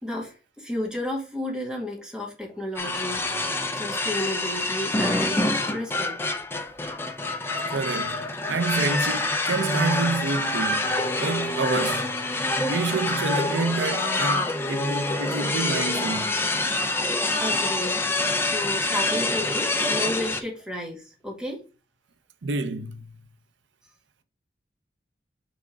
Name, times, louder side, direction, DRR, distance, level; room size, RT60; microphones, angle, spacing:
voice 1, 0.0-3.2 3.7-5.4 5.7-6.2 17.4-18.0 18.4-21.6, left 1 dB, 5° right, 2.0 m, -32 dB
sound 1, 2.8-20.4, left 2 dB, 15° left, 0.7 m, -26 dB
voice 2, 7.7-10.9 11.2-12.1 12.7-16.3 22.4-23.1, right 4 dB, 90° right, 0.6 m, -28 dB
6.1 x 3.6 x 5.0 m
head